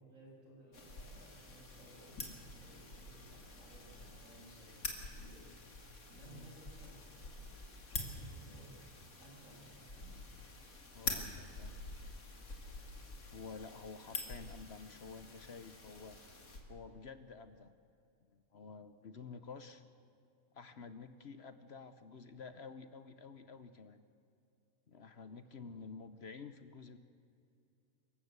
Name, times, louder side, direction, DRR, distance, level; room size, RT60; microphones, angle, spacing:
voice 1, 0.0-5.5 6.0-7.6 7.9-8.7 9.2-10.2, right 2 dB, 70° right, -3 dB, 7.6 m, -59 dB
sound 1, 0.7-16.6, left 3 dB, 90° left, 2.9 m, -47 dB
voice 2, 10.9-11.8 13.3-16.2 16.7-17.7 18.5-19.8 20.5-24.0 24.9-27.0, left 5 dB, 55° left, 11 dB, 1.1 m, -50 dB
25.0 x 15.0 x 8.0 m, 2.6 s
omnidirectional pair, 1.4 m